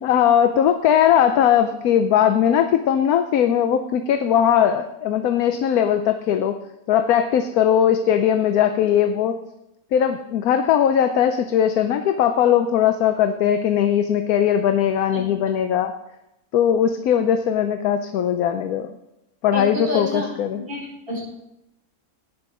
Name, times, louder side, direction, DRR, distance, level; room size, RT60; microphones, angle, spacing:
voice 1, 0.0-6.6 6.9-9.4 9.9-15.9 16.5-19.0 19.4-20.6, left 9 dB, 75° left, 8 dB, 1.1 m, -19 dB
voice 2, 19.5-20.3 20.7-21.3, left 1 dB, 55° right, -4 dB, 5.2 m, -28 dB
17.0 x 6.1 x 4.9 m, 0.88 s
omnidirectional pair, 1.6 m